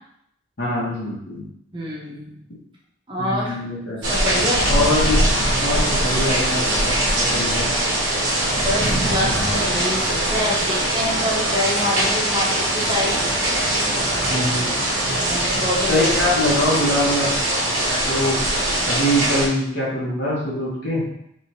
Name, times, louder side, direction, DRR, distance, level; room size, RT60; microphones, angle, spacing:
voice 1, 0.6-1.4 3.2-4.0 4.7-5.2 5.5-7.7 14.3-14.7 15.9-18.3 18.9-21.0, left 1 dB, 50° left, -7 dB, 1.1 m, -23 dB
voice 2, 1.7-2.4 3.1-3.6 4.1-4.7 8.5-13.2 15.2-16.3, left 1 dB, 25° right, -4 dB, 0.8 m, -26 dB
sound 1, 4.0-19.5, right 1 dB, 60° right, 1.0 m, -21 dB
3.3 x 3.3 x 2.9 m, 0.76 s
head